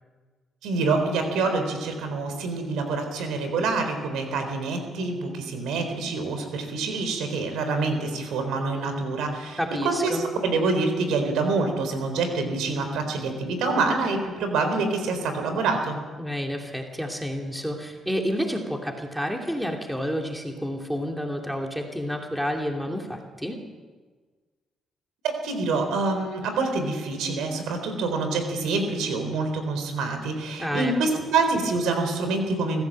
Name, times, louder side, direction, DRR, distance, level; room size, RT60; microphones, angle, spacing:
voice 1, 0.6-16.0 25.4-32.8, right 3 dB, 85° right, 6 dB, 4.2 m, -26 dB
voice 2, 9.6-10.2 16.2-23.6 30.6-30.9, equal, 5° right, 2 dB, 2.8 m, -29 dB
25.0 x 15.0 x 7.6 m, 1.4 s
cardioid pair, 90°, 0 cm